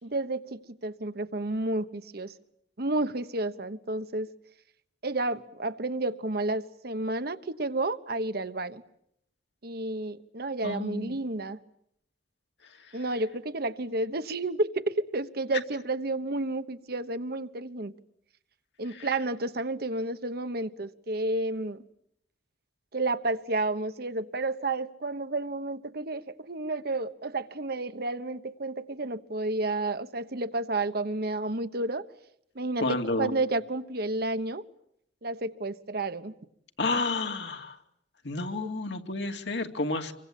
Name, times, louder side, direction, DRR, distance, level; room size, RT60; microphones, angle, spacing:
voice 1, 0.0-2.3 2.8-4.3 5.0-8.8 9.6-11.6 12.9-17.9 18.8-21.8 22.9-32.0 32.5-34.6 35.2-36.3 38.6-38.7, right 2 dB, 60° right, 11 dB, 1.2 m, -31 dB
voice 2, 10.6-11.2 19.0-19.1 32.8-33.3 36.8-37.8 38.2-40.1, left 2 dB, 75° left, 5 dB, 2.5 m, -30 dB
26.5 x 24.0 x 8.5 m, 0.74 s
head